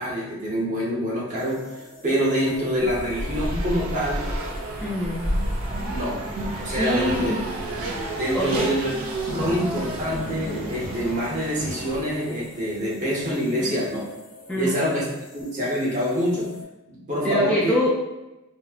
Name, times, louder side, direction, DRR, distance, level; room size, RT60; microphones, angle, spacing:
voice 1, 0.0-4.2 5.9-6.2 6.6-7.3 8.2-8.9 9.3-14.1 14.5-15.0 15.3-16.5 16.9-17.7, equal, 35° right, -4 dB, 0.7 m, -26 dB
sound 1, 1.3-16.6, left 1 dB, 60° left, 0.9 m, -45 dB
Race car auto racing, 2.8-12.4, right 1 dB, 75° right, 0.6 m, -30 dB
voice 2, 4.8-5.2 6.7-7.4 8.3-8.6 13.6-13.8 14.5-14.7 17.2-17.9, equal, 5° left, -8 dB, 0.3 m, -24 dB
4.0 x 2.0 x 2.3 m, 0.98 s
head